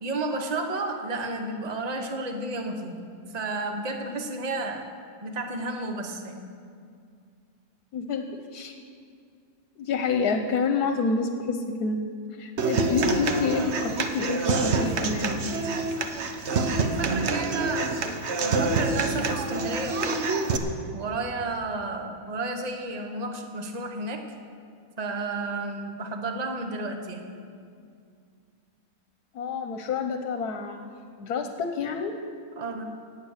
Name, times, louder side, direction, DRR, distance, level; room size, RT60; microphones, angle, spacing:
voice 1, 0.0-4.9 5.2-6.5 16.7-17.9 18.4-20.2 20.9-24.3 25.0-27.3 32.6-32.8, right 2 dB, 30° right, 4 dB, 1.1 m, -32 dB
voice 2, 7.9-8.7 9.8-12.0 12.4-15.3 29.3-30.8 31.2-32.1, left 4 dB, 80° left, 6 dB, 1.4 m, -28 dB
Human voice / Acoustic guitar, 12.6-20.6, right 3 dB, 50° right, 1.1 m, -27 dB
17.5 x 8.7 x 6.5 m, 2.3 s
omnidirectional pair, 1.6 m